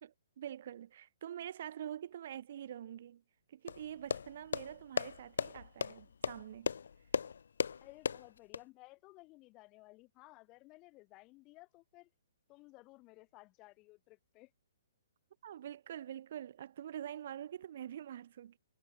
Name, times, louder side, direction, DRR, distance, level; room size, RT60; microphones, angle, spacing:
voice 1, 0.0-3.2 3.5-6.7 15.4-18.6, right 10 dB, 50° right, 1.9 m, -45 dB
sound 1, 3.7-8.6, left 6 dB, 65° left, 0.8 m, -37 dB
voice 2, 7.8-12.1 12.5-14.5, left 22 dB, 30° left, 5.7 m, -57 dB
figure-of-eight pair, 125°, 0 cm